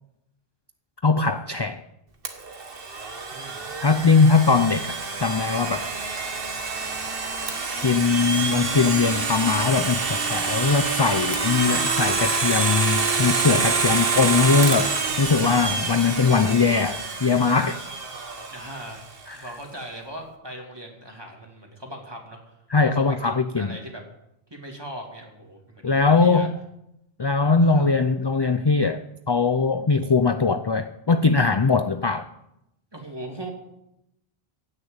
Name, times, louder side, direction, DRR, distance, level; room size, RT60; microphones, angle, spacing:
voice 1, 1.0-1.8 3.8-5.9 7.8-17.8 19.3-19.4 22.7-23.8 25.8-26.6 27.2-32.3, left 4 dB, 35° left, 10 dB, 0.5 m, -21 dB
Domestic sounds home sounds, 2.2-19.0, right 4 dB, 65° right, 1.6 m, -27 dB
voice 2, 3.3-3.7 18.5-19.0 19.3-22.4 22.9-24.0 24.5-26.5 27.6-28.0 32.9-33.5, right 1 dB, 25° right, 1 dB, 2.8 m, -39 dB
16.0 x 6.8 x 8.9 m, 0.83 s
omnidirectional pair, 1.1 m